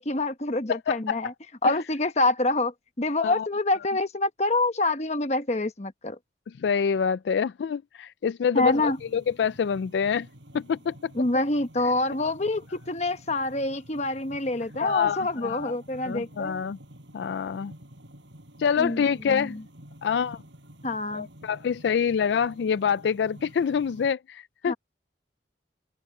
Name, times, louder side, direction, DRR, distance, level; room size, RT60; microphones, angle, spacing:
voice 1, 0.0-1.3 1.6-6.2 8.5-9.0 11.1-16.6 18.7-19.6 20.8-21.3 24.7-24.8, left 2 dB, 40° left, 1.1 m, -26 dB
voice 2, 0.7-1.2 1.6-1.8 3.2-3.5 6.6-10.3 10.5-11.1 14.8-15.7 16.0-16.8 17.1-17.7 18.6-19.6 20.0-20.4 21.1-24.7, left 7 dB, 75° left, 0.3 m, -26 dB
sound 1, 8.5-24.1, equal, 90° right, 7.3 m, -50 dB
head